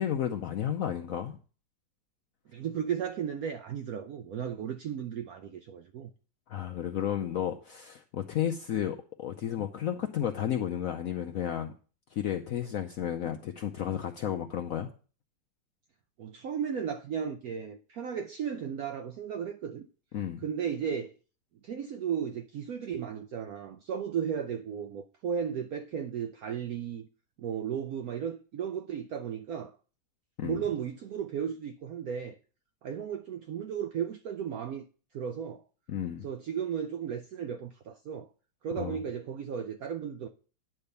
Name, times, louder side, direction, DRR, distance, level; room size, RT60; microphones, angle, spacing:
voice 1, 0.0-1.4 6.5-11.7 12.1-14.9 20.1-20.4 30.4-30.6 35.9-36.2 38.8-39.0, left 10 dB, 70° left, 0.8 m, -32 dB
voice 2, 2.5-6.1 16.2-19.9 20.4-21.1 21.6-27.1 27.4-29.7 30.4-32.4 32.8-34.8 35.1-35.6 36.2-38.3 38.6-40.3, right 8 dB, 75° right, 0.8 m, -35 dB
9.7 x 3.5 x 6.7 m
omnidirectional pair, 2.1 m